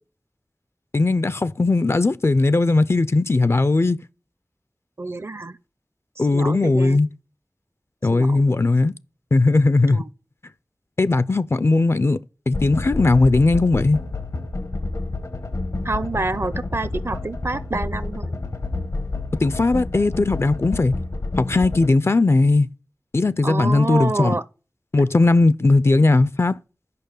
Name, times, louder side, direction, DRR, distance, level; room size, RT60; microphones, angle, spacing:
voice 1, 0.9-4.0 6.2-7.1 8.0-8.9 9.3-10.0 11.0-12.2 12.5-14.0 19.4-20.9 21.4-22.7 23.1-24.3 24.9-26.6, left 3 dB, 50° left, 0.4 m, -18 dB
voice 2, 5.0-5.5 6.3-7.0 8.1-8.4 9.9-10.0 15.8-18.3 23.4-24.4, right 3 dB, 45° right, 0.6 m, -27 dB
sound 1, 12.5-21.9, left 2 dB, 75° left, 1.2 m, -29 dB
6.8 x 5.4 x 6.5 m
wide cardioid pair, 45°, 6 cm